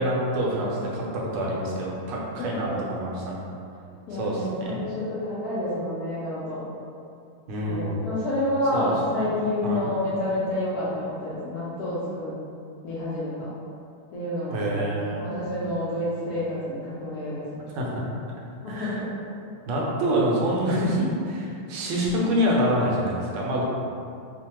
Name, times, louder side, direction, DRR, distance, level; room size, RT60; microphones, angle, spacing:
voice 1, 0.0-3.4 4.1-4.8 7.5-8.1 8.7-9.2 9.6-9.9 14.5-15.2 17.7-18.0 18.7-19.0 19.7-23.6, equal, 75° right, -3 dB, 1.2 m, -26 dB
voice 2, 3.9-6.6 7.6-12.3 12.8-13.5 14.1-14.9 15.2-17.6 18.6-19.1, left 1 dB, 80° left, -9 dB, 0.8 m, -29 dB
3.2 x 2.1 x 2.9 m, 2.4 s
omnidirectional pair, 2.2 m